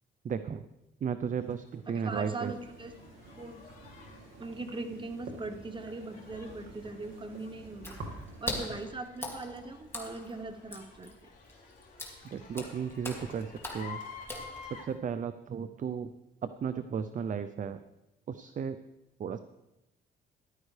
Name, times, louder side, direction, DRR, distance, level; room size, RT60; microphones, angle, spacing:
voice 1, 0.2-0.7 1.0-2.5 12.2-14.0 14.6-16.1 16.4-17.8 18.3-18.8 19.2-19.4, right 7 dB, 40° right, 12 dB, 0.5 m, -34 dB
sound 1, 1.4-14.8, left 5 dB, 45° left, 3.3 m, -52 dB
voice 2, 1.9-2.9 3.4-3.6 4.4-8.0 8.4-11.1, right 3 dB, 25° right, 8 dB, 1.1 m, -40 dB
sound 2, 2.2-8.8, right 2 dB, 80° right, 2.0 m, -49 dB
Water / Splash splatter, 7.8-15.0, left 1 dB, 10° left, 2.4 m, -42 dB
14.0 x 11.5 x 3.3 m, 0.95 s
cardioid pair, 90°, 20 cm